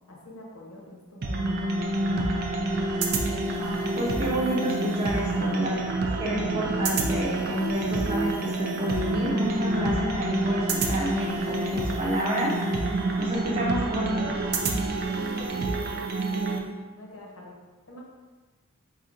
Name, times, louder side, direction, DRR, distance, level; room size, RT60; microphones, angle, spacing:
voice 1, 0.1-1.4 1.8-1.9 3.1-3.4 5.5-6.2 13.9-14.5 15.0-16.7 16.9-17.6 17.9-18.0, equal, 75° left, -3 dB, 1.0 m, -44 dB
sound 1, 1.2-16.6, right 2 dB, 45° right, 0.4 m, -28 dB
voice 2, 3.6-5.9 6.2-12.6 13.2-14.4, equal, 25° right, -4 dB, 0.8 m, -29 dB
3.4 x 2.7 x 3.8 m, 1.3 s
head